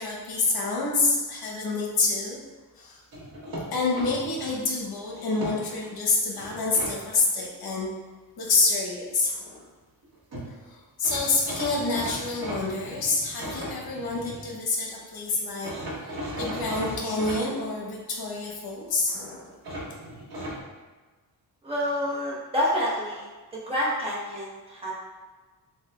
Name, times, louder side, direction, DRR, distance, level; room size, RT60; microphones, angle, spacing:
voice 1, 0.0-2.4 2.8-3.0 3.7-7.9 8.4-9.6 10.7-15.7 16.0-19.5, left 3 dB, 70° left, -2 dB, 0.9 m, -27 dB
sound 1, 3.1-4.6 5.1-5.9 6.4-6.9 10.0-10.1 10.3-10.5 11.0-14.5 15.6-17.4 19.6-20.6, equal, 70° right, 1.2 m, -36 dB
voice 2, 21.6-23.3 23.5-24.9, equal, 15° right, -6 dB, 0.9 m, -28 dB
6.7 x 2.3 x 2.3 m, 1.3 s
wide cardioid pair, 180°, 38 cm